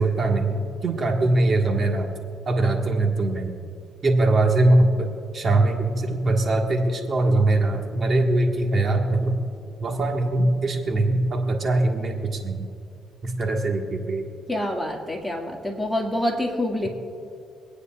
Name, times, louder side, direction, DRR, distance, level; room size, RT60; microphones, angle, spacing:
voice 1, 0.0-2.1 2.4-3.5 4.0-9.4 9.8-12.7 13.2-14.3, right 2 dB, 45° right, 2 dB, 1.5 m, -22 dB
voice 2, 14.5-16.9, left 1 dB, 10° left, 0 dB, 2.0 m, -26 dB
25.0 x 9.5 x 2.4 m, 2.6 s
cardioid pair, 90°, 0 cm